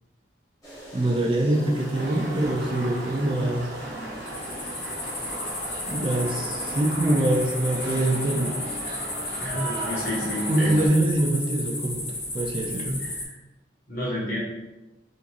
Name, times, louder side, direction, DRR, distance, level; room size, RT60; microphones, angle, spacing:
sound 1, 0.6-6.4, right 1 dB, 20° left, 1.0 m, -43 dB
voice 1, 0.9-3.7 5.9-8.6 8.8-9.0 10.2-12.9, right 1 dB, 30° right, 1 dB, 0.4 m, -24 dB
sound 2, 1.9-10.9, right 1 dB, 65° right, 0.9 m, -36 dB
sound 3, 4.3-13.2, left 2 dB, 80° left, 1.5 m, -33 dB
voice 2, 9.4-10.7 12.8-13.3 13.9-14.4, equal, 50° left, -7 dB, 1.3 m, -30 dB
3.8 x 2.5 x 2.9 m, 1.0 s
head